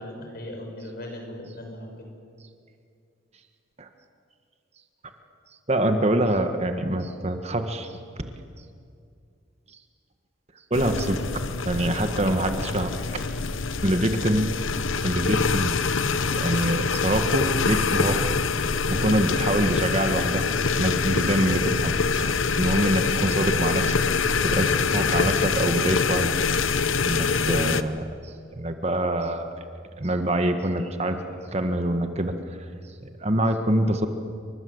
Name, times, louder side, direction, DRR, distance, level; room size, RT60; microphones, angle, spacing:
voice 1, 0.0-2.1, left 1 dB, 50° left, 3 dB, 6.2 m, -38 dB
voice 2, 5.7-7.9 10.7-13.2 13.8-14.5 15.0-16.0 16.3-18.3 18.9-20.5 20.7-23.9 24.4-26.4 26.6-29.5 30.0-31.2 31.5-32.4 33.0-34.1, right 1 dB, 35° right, 7 dB, 1.5 m, -25 dB
sound 1, 10.7-27.8, left 4 dB, 90° left, 1.0 m, -25 dB
29.5 x 24.5 x 8.0 m, 2.4 s
head